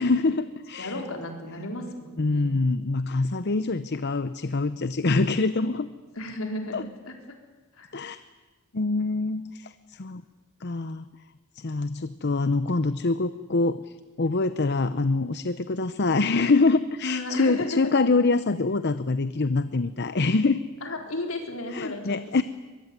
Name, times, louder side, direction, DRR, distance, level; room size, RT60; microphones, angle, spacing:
voice 1, 0.0-1.0 2.2-5.9 6.7-6.8 7.9-8.2 8.7-10.2 10.6-11.1 11.6-20.6 21.7-22.4, left 3 dB, 50° left, 13 dB, 0.8 m, -25 dB
voice 2, 0.8-2.5 6.1-7.2 7.7-8.1 17.0-17.9 20.8-22.4, left 2 dB, 70° left, 4 dB, 4.3 m, -34 dB
23.0 x 22.5 x 9.6 m, 1.3 s
head